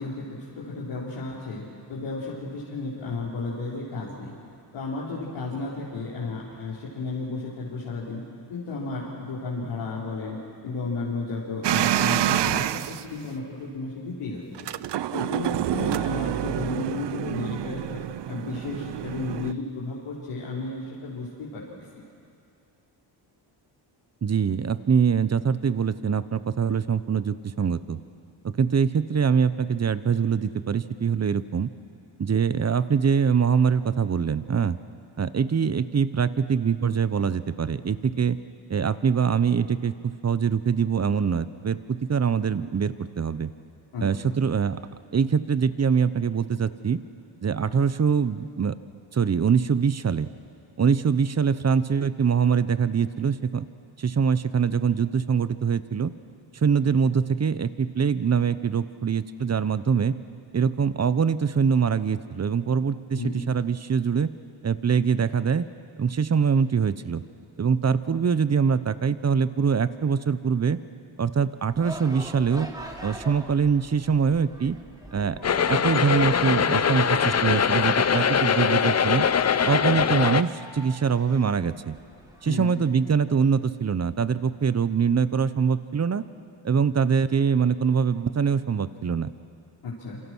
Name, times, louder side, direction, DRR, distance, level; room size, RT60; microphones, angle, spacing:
voice 1, 0.0-1.6 1.9-4.3 4.7-8.2 8.5-10.4 10.6-14.7 15.1-18.0 18.3-21.6 21.9-22.0 43.9-44.3 63.1-63.3 82.4-82.7 89.8-90.2, left 3 dB, 80° left, -7 dB, 4.6 m, -33 dB
sound 1, 11.6-13.1 14.5-19.5, right 12 dB, 60° right, 0.7 m, -27 dB
voice 2, 24.2-28.0 28.4-31.7 32.2-34.8 35.2-38.4 38.7-43.5 44.0-44.8 45.1-47.0 47.4-48.8 49.1-50.3 50.8-53.6 54.0-56.1 56.5-60.1 60.5-64.3 64.6-65.7 66.0-67.2 67.6-70.8 71.2-72.7 73.0-74.8 75.1-75.4 75.7-79.3 79.6-81.9 82.4-86.2 86.6-89.3, right 6 dB, 30° right, 14 dB, 1.0 m, -23 dB
sound 2, 71.7-82.7, right 1 dB, 10° right, 2.9 m, -44 dB
sound 3, 75.4-80.4, left 7 dB, 30° left, 0.7 m, -22 dB
27.5 x 26.0 x 6.3 m, 2.4 s
cardioid pair, 80°, 49 cm